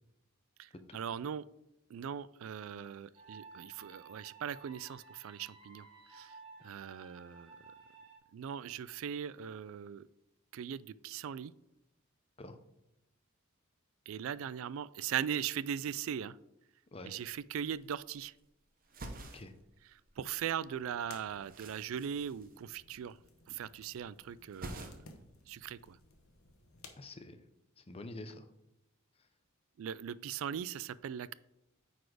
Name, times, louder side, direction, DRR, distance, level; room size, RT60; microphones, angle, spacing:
voice 1, 0.6-1.4 1.9-5.9 6.1-6.4 6.6-7.5 8.3-10.1 10.5-11.5 14.1-16.4 17.0-18.3 20.2-23.2 23.5-25.0 25.5-26.0 29.8-31.3, right 8 dB, 65° right, 18 dB, 0.3 m, -39 dB
sound 1, 3.1-8.2, right 4 dB, 25° right, 2.2 m, -55 dB
sound 2, 17.7-18.5 18.8-20.4 20.7-23.2 23.5-24.0 24.3-25.3 25.6-26.4, right 2 dB, 40° right, 0.9 m, -49 dB
sound 3, 20.6-26.9, left 4 dB, 75° left, 1.1 m, -59 dB
voice 2, 27.0-27.4 27.8-28.5, left 2 dB, 25° left, 9 dB, 0.6 m, -47 dB
9.2 x 4.2 x 4.9 m, 0.87 s
head